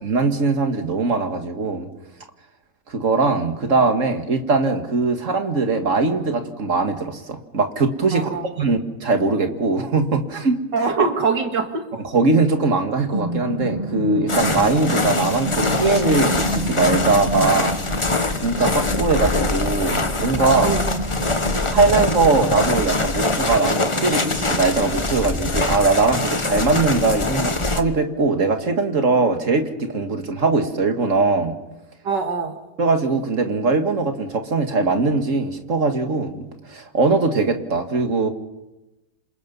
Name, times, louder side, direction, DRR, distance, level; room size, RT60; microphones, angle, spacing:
voice 1, 0.0-1.9 2.9-8.3 8.6-10.6 12.1-17.8 18.4-20.8 21.7-31.5 32.8-38.3, right 3 dB, 45° right, 6 dB, 2.2 m, -21 dB
voice 2, 8.1-8.5 10.7-11.8 20.6-20.9 32.0-32.5, right 4 dB, 90° right, 5 dB, 2.7 m, -23 dB
sound 1, 12.6-26.9, right 1 dB, 25° right, 1.7 m, -31 dB
sound 2, 14.3-27.8, left 2 dB, 20° left, 1.0 m, -23 dB
27.5 x 27.0 x 5.5 m, 1.0 s
omnidirectional pair, 1.8 m